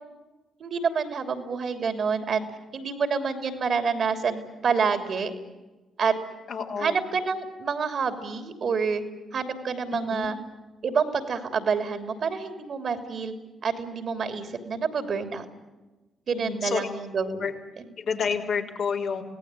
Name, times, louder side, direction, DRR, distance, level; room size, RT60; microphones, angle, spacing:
voice 1, 0.6-2.4 2.7-5.3 6.0-6.2 6.8-9.0 9.3-10.4 10.8-13.3 13.6-15.4 16.3-17.5 17.8-17.9, right 5 dB, 60° right, 7 dB, 3.1 m, -27 dB
voice 2, 6.5-7.0 9.9-10.3 16.3-16.9 17.4-17.5 18.0-19.2, left 6 dB, 65° left, 0 dB, 3.8 m, -29 dB
27.0 x 18.0 x 9.9 m, 1.2 s
hypercardioid pair, 45°, 0 cm